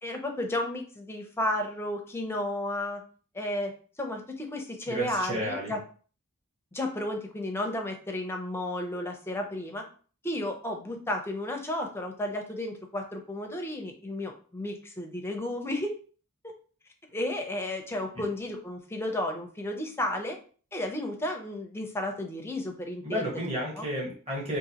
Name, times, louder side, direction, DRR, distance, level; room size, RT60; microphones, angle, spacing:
voice 1, 0.0-3.0 3.3-3.7 4.0-5.8 6.7-9.8 10.2-15.9 17.1-20.4 20.7-23.3 23.7-23.9, left 1 dB, 10° left, 3 dB, 0.5 m, -33 dB
voice 2, 4.9-5.7 23.0-24.6, equal, 30° right, -4 dB, 1.2 m, -32 dB
3.9 x 2.5 x 2.8 m, 0.41 s
head